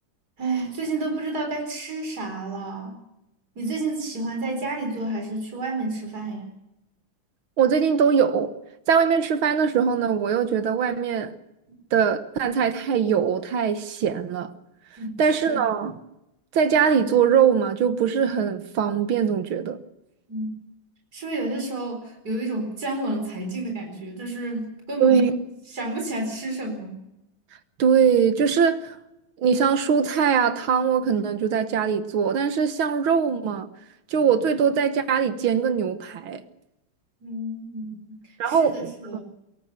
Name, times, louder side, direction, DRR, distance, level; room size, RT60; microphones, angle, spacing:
voice 1, 0.4-3.0 3.5-6.5 15.0-15.7 20.3-20.5 21.1-25.2 25.7-27.0 37.2-38.2 38.4-39.2, right 2 dB, 50° right, 4.9 m, -30 dB
voice 2, 7.6-8.5 8.9-11.3 11.9-14.5 15.2-16.0 16.5-19.8 25.0-25.3 27.8-29.0 29.4-33.7 34.1-36.4 38.4-39.2, right 7 dB, 85° right, 2.1 m, -21 dB
22.0 x 18.5 x 6.9 m
omnidirectional pair, 2.2 m